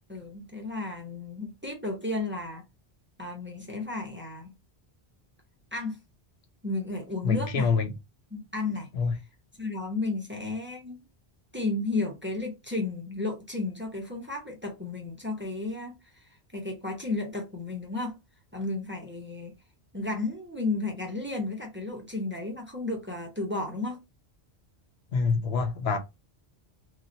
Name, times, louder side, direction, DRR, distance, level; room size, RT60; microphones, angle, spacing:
voice 1, 0.1-2.6 3.2-4.5 5.7-6.0 6.6-7.7 8.3-8.9 9.6-11.0 11.5-16.1 16.5-18.2 18.5-19.5 19.9-24.0, left 2 dB, 10° right, 0.8 m, -33 dB
voice 2, 7.2-7.9 8.9-9.1 25.1-26.0, left 5 dB, 75° left, 0.9 m, -26 dB
3.1 x 2.7 x 2.6 m
omnidirectional pair, 1.1 m